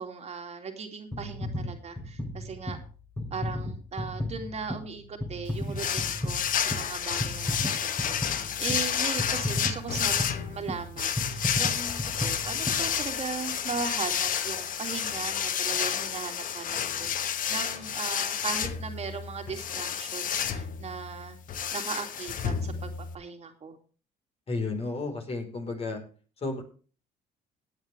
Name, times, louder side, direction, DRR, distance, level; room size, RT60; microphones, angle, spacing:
voice 1, 0.0-2.8 3.3-21.4 21.7-23.8, right 5 dB, 40° right, 4 dB, 2.7 m, -38 dB
sound 1, 1.1-13.5 14.1-14.2, left 1 dB, 15° left, 3.1 m, -35 dB
sound 2, 5.8-23.1, left 8 dB, 55° left, 1.3 m, -30 dB
voice 2, 24.5-26.0 26.4-26.6, left 3 dB, 35° left, 4 dB, 4.4 m, -32 dB
17.5 x 9.5 x 3.4 m, 0.38 s
cardioid pair, 110°, 17 cm